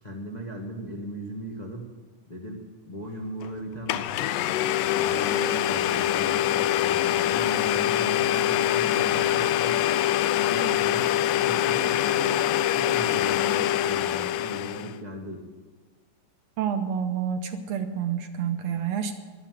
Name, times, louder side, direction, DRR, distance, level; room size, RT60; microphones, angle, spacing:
voice 1, 0.0-1.9 2.3-4.2 4.9-9.8 10.4-15.5, equal, 70° left, -1 dB, 0.4 m, -38 dB
Domestic sounds home sounds, 3.4-3.5 3.9-14.9, left 12 dB, 85° left, 2.1 m, -24 dB
voice 2, 16.6-19.1, right 8 dB, 70° right, 7 dB, 1.8 m, -28 dB
12.5 x 11.0 x 7.7 m, 1.5 s
omnidirectional pair, 3.6 m